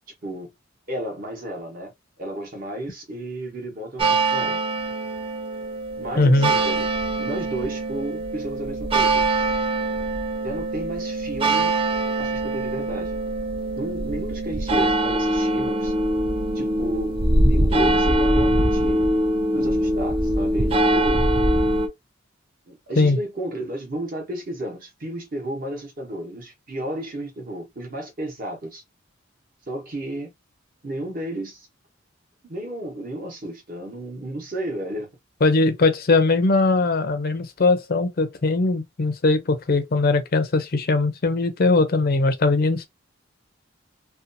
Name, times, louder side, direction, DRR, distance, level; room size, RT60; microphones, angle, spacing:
voice 1, 0.2-0.5 0.9-4.6 6.0-6.9 7.2-9.3 10.4-11.8 12.2-13.2 13.7-15.9 16.5-17.2 17.4-19.0 19.5-21.3 22.6-28.8 29.7-30.3 30.8-31.7 32.5-35.1, right 1 dB, 45° right, 0.9 m, -33 dB
sound 1, 4.0-21.9, right 1 dB, 25° right, 0.4 m, -23 dB
voice 2, 6.2-6.5 23.0-23.2 35.4-42.8, left 3 dB, 45° left, 0.5 m, -20 dB
2.6 x 2.3 x 2.5 m
head